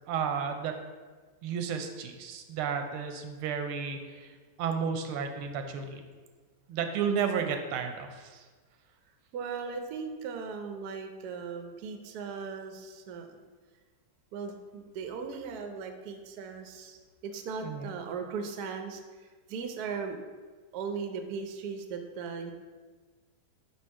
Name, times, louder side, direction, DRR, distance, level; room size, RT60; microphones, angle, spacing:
voice 1, 0.1-0.8 1.4-6.0 6.7-8.4 17.6-17.9, right 6 dB, 90° right, 6 dB, 1.5 m, -32 dB
voice 2, 9.3-13.4 14.3-20.2 20.7-22.5, right 5 dB, 70° right, 5 dB, 0.9 m, -38 dB
4.9 x 4.4 x 4.6 m, 1.4 s
omnidirectional pair, 2.3 m